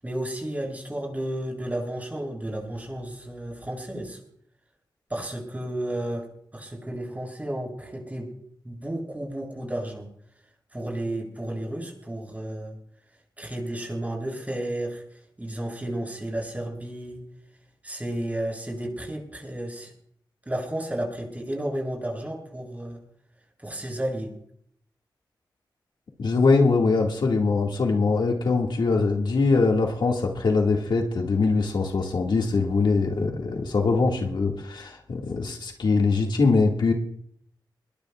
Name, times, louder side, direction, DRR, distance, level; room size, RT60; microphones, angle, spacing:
voice 1, 0.0-4.2 5.1-6.3 6.5-8.3 8.6-10.1 10.7-12.8 13.4-15.0 15.4-17.2 17.8-19.9 20.5-23.0 23.6-24.3, right 1 dB, 20° right, -1 dB, 7.9 m, -32 dB
voice 2, 26.2-36.9, left 4 dB, 70° left, 1 dB, 2.1 m, -22 dB
22.0 x 21.5 x 2.4 m, 0.67 s
wide cardioid pair, 80°, 8 cm